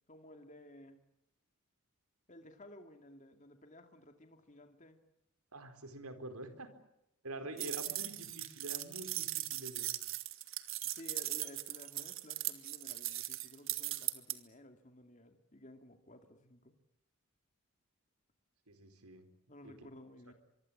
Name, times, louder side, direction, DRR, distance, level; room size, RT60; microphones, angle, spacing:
voice 1, 0.1-1.0 2.3-5.0 7.4-8.0 10.8-16.8 19.5-20.3, left 1 dB, 35° left, 6 dB, 2.5 m, -55 dB
voice 2, 5.5-6.7 7.2-9.9 18.7-19.2 19.6-19.7, right 1 dB, 85° right, 9 dB, 4.4 m, -46 dB
sound 1, 7.6-14.4, right 15 dB, 65° right, 1.9 m, -39 dB
25.0 x 24.0 x 8.7 m, 0.82 s
head